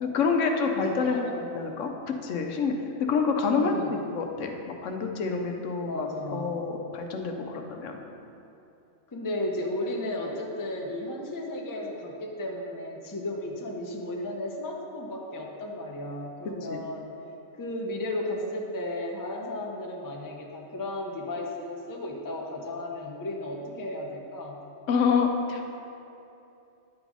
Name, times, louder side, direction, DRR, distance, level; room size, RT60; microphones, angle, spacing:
voice 1, 0.0-1.3 1.5-2.8 3.1-8.0 16.6-16.8 24.9-25.6, left 5 dB, 75° left, 4 dB, 1.0 m, -27 dB
voice 2, 1.0-1.6 3.5-3.9 5.9-6.5 7.2-7.7 9.1-17.0 17.6-24.6, left 1 dB, 20° left, 0 dB, 0.5 m, -34 dB
9.7 x 4.0 x 4.7 m, 2.7 s
omnidirectional pair, 1.3 m